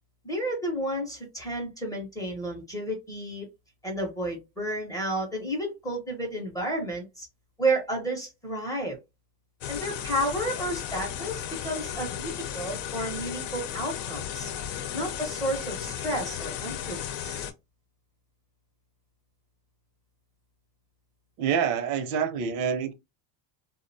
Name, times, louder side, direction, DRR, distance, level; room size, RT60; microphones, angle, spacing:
voice 1, 0.2-3.5 3.8-7.3 7.6-9.0 9.7-14.5 14.9-17.5, right 1 dB, 10° left, 0.5 m, -31 dB
sound 1, 9.6-17.5, left 9 dB, 85° left, 0.7 m, -35 dB
voice 2, 21.4-22.9, right 7 dB, 80° right, 0.7 m, -27 dB
2.4 x 2.1 x 2.6 m
cardioid pair, 155°, 46 cm